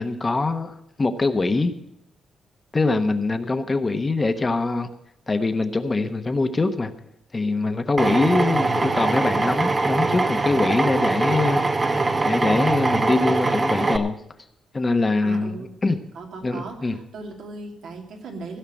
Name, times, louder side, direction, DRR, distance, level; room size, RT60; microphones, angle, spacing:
voice 1, 0.0-1.7 2.7-4.9 5.3-6.9 7.3-11.6 12.2-14.2 14.7-16.0 16.4-17.0, left 3 dB, 25° left, 8 dB, 1.0 m, -23 dB
Drill, 8.0-14.0, right 3 dB, 25° right, 0.8 m, -22 dB
voice 2, 15.2-15.7 16.1-18.6, right 3 dB, 80° right, 2 dB, 2.6 m, -37 dB
16.0 x 5.7 x 8.7 m, 0.81 s
cardioid pair, 115°, 0 cm